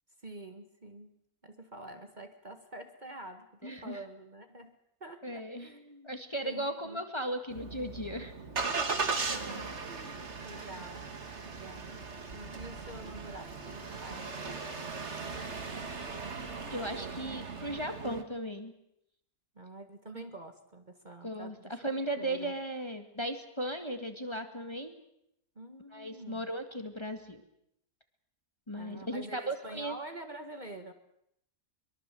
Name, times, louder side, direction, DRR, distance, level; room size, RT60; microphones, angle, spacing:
voice 1, 0.2-1.2 1.4-6.1 6.4-7.0 9.2-15.6 19.6-21.7 22.2-22.6 25.6-26.5 28.8-30.9, right 1 dB, 30° right, 6 dB, 1.8 m, -47 dB
voice 2, 3.6-4.0 5.2-5.7 6.0-8.4 16.7-18.7 20.1-20.2 21.2-24.9 25.9-27.4 28.7-30.0, right 1 dB, 20° left, 6 dB, 1.9 m, -37 dB
Engine starting, 7.5-18.2, right 4 dB, 50° right, 2.1 m, -38 dB
23.5 x 23.0 x 7.7 m, 0.77 s
omnidirectional pair, 1.6 m